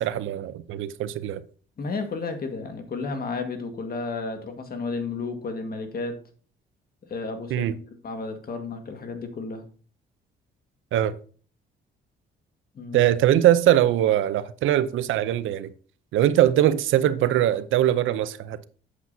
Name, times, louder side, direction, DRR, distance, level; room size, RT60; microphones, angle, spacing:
voice 1, 0.0-1.4 7.5-7.8 10.9-11.1 12.9-15.7 16.1-18.7, right 12 dB, 80° right, 0.6 m, -21 dB
voice 2, 1.8-6.2 7.1-7.7 8.0-9.6 12.7-13.1, left 4 dB, 50° left, 1.8 m, -32 dB
8.2 x 7.4 x 2.8 m
cardioid pair, 90°, 20 cm